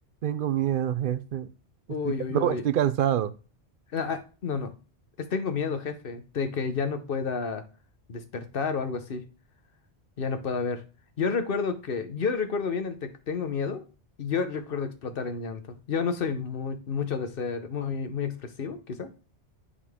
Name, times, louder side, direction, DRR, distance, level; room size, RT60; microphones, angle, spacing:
voice 1, 0.2-1.5 2.0-3.3, right 10 dB, 60° right, 15 dB, 0.6 m, -26 dB
voice 2, 1.9-2.6 3.9-4.7 5.2-7.6 8.1-9.2 10.2-10.8 11.2-13.8 14.2-19.2, left 5 dB, 55° left, 9 dB, 1.1 m, -30 dB
11.0 x 4.2 x 3.6 m, 0.35 s
omnidirectional pair, 1.2 m